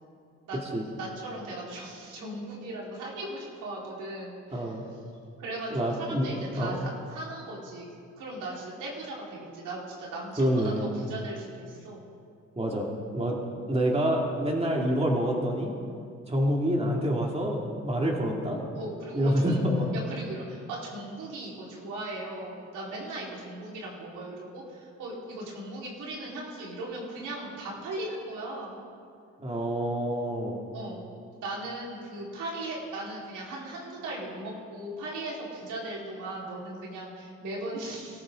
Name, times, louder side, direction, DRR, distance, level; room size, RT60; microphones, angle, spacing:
voice 1, 0.5-4.8 5.4-7.9 8.2-12.0 18.7-19.6 19.9-28.8 30.7-31.0 31.4-38.2, right 1 dB, 85° right, -5 dB, 4.6 m, -38 dB
voice 2, 4.5-4.8 5.7-6.9 10.4-10.9 12.6-12.9 13.1-13.4 13.7-15.7 16.3-18.6 19.1-19.8 29.4-30.6, equal, 20° right, -1 dB, 2.6 m, -27 dB
23.5 x 14.0 x 3.9 m, 2.4 s
cardioid pair, 90°, 30 cm